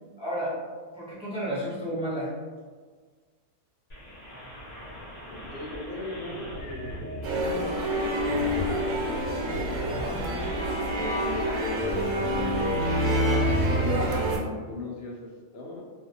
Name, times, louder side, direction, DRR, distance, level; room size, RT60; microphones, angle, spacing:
voice 1, 0.2-0.6 0.9-2.3 9.9-10.2, equal, 5° right, -10 dB, 0.4 m, -32 dB
sound 1, 3.9-13.2, equal, 45° left, 0.8 m, -41 dB
voice 2, 5.3-9.3 11.5-12.1 13.0-15.2 15.5-15.8, left 2 dB, 75° left, -1 dB, 0.5 m, -38 dB
sound 2, 7.2-14.4, equal, 80° right, 1.0 m, -27 dB
2.5 x 2.4 x 2.7 m, 1.5 s
omnidirectional pair, 1.6 m